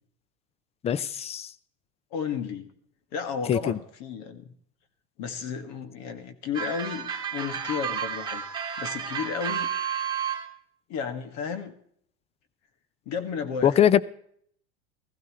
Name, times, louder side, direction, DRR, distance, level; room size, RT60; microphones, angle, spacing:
voice 1, 0.8-1.5 3.5-3.8 13.6-14.0, left 9 dB, 20° left, 0.4 m, -22 dB
voice 2, 2.1-2.7 3.1-4.5 5.2-9.7 10.9-11.7 13.1-13.8, left 6 dB, 55° left, 1.8 m, -33 dB
sound 1, 6.5-10.5, right 7 dB, 15° right, 2.2 m, -31 dB
16.0 x 15.0 x 3.1 m
supercardioid pair, 125°, 33 cm